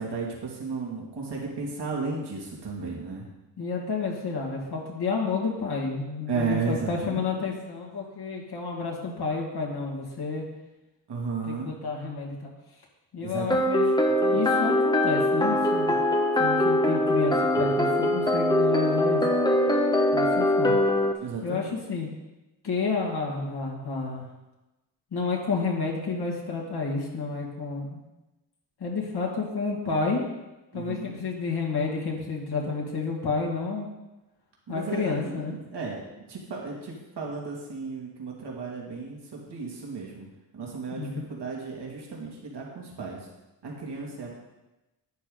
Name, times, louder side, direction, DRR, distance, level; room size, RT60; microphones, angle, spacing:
voice 1, 0.0-3.3 6.3-7.4 11.1-11.7 13.2-13.8 14.2-14.4 21.2-21.7 30.7-31.2 34.7-40.3 40.5-43.3 43.6-44.3, right 4 dB, 75° right, -2 dB, 2.6 m, -34 dB
voice 2, 3.6-10.4 11.5-12.5 13.1-13.9 14.3-16.0 16.4-19.2 20.1-20.8 21.4-22.1 22.6-24.3 25.1-28.0 28.8-30.2 30.7-33.9 34.7-35.5 41.0-41.2, left 4 dB, 70° left, -2 dB, 2.3 m, -30 dB
sound 1, 13.5-21.1, left 1 dB, 10° left, 1.1 m, -22 dB
11.0 x 9.9 x 4.0 m, 1.0 s
wide cardioid pair, 110°, 41 cm